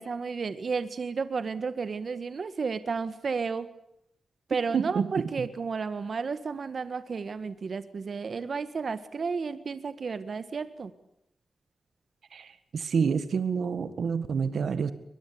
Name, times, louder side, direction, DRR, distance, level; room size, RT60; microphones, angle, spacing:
voice 1, 0.0-3.7 4.5-10.9, right 5 dB, 60° right, 12 dB, 1.6 m, -32 dB
voice 2, 4.7-5.1 12.3-14.9, right 6 dB, 75° right, 12 dB, 1.7 m, -28 dB
23.0 x 21.5 x 8.6 m, 0.80 s
cardioid pair, 85°, 0 cm